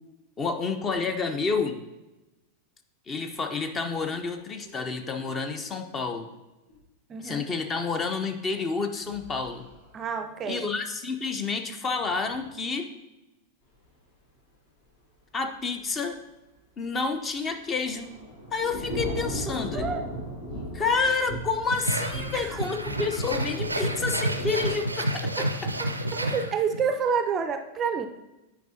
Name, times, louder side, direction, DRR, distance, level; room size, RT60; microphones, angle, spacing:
voice 1, 0.4-1.8 3.1-6.3 7.2-9.7 10.5-12.9 15.3-16.2 16.8-18.1 18.5-19.8 20.7-25.7, left 4 dB, 25° left, 7 dB, 0.6 m, -29 dB
sound 1, 4.1-6.4 6.7-6.8 9.0-10.2 12.0-12.5, equal, 80° left, 2.3 m, -52 dB
voice 2, 7.1-7.5 9.9-10.7 19.7-20.0 22.3-22.6 25.4-25.5 25.8-28.1, right 6 dB, 25° right, 8 dB, 0.4 m, -29 dB
Thunder / Rain, 17.4-24.8, equal, 60° left, 2.4 m, -36 dB
sound 2, 21.7-26.9, right 1 dB, 85° right, 0.4 m, -29 dB
9.3 x 5.0 x 2.7 m, 1.0 s
figure-of-eight pair, 90°, 0 cm